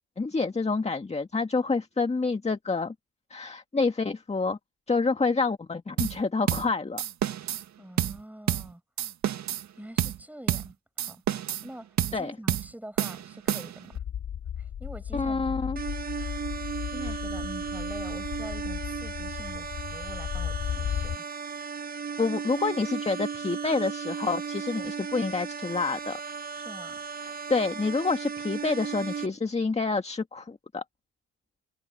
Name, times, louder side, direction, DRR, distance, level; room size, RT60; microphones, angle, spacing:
voice 1, 0.2-2.9 3.3-4.6 4.9-7.0 12.1-12.3 15.1-15.8 22.2-26.2 27.2-30.8, left 4 dB, 20° left, 1.9 m, -28 dB
sound 1, 6.0-6.2 6.5-6.7 7.0-7.6 8.0-8.2 8.5-8.7 9.0-9.7 10.0-10.2 10.5-10.7 11.0-11.7 12.0-12.2 12.5-12.7 13.0-13.9, right 11 dB, 65° right, 2.0 m, -29 dB
voice 2, 7.5-8.8 9.8-14.0 14.6-15.8 16.1-21.2 26.5-27.0, right 1 dB, 5° right, 7.9 m, -45 dB
sound 2, 13.9-21.2, left 9 dB, 65° left, 3.6 m, -35 dB
sound 3, 15.8-29.3, right 6 dB, 30° right, 1.1 m, -36 dB
cardioid pair, 90°, 30 cm